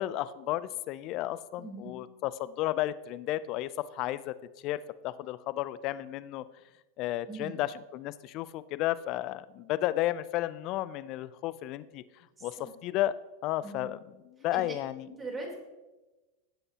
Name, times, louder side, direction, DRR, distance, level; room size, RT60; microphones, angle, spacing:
voice 1, 0.0-4.3 4.6-6.4 7.0-12.0 12.4-13.1 13.4-14.0 14.2-15.1, left 14 dB, 50° left, 17 dB, 0.5 m, -33 dB
voice 2, 1.6-2.0 7.3-7.6 12.4-12.7 13.6-13.9 14.5-14.6 15.1-15.6, right 3 dB, 20° right, 0 dB, 3.6 m, -41 dB
15.5 x 7.9 x 2.9 m, 1.1 s
hypercardioid pair, 100°, 0 cm